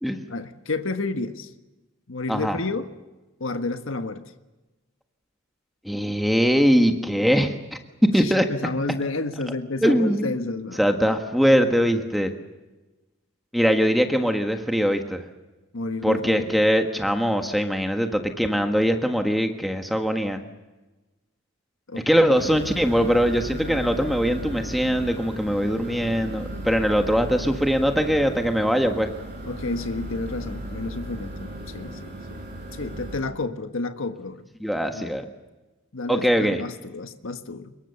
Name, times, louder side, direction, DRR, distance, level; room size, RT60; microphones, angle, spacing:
voice 1, 0.3-1.5 2.1-2.9 3.4-4.3 8.2-11.1 15.7-16.5 21.9-22.4 29.4-32.4 32.7-34.5 34.9-35.1 35.9-37.7, left 3 dB, 75° left, 8 dB, 1.4 m, -31 dB
voice 2, 5.8-7.8 8.1-8.5 9.8-10.3 10.8-12.3 13.5-15.2 16.0-20.4 22.0-29.1 34.6-35.2 36.1-36.6, equal, ahead, 5 dB, 1.5 m, -22 dB
sound 1, 22.3-33.2, right 1 dB, 40° right, 6.9 m, -36 dB
25.5 x 22.5 x 7.0 m, 1.1 s
head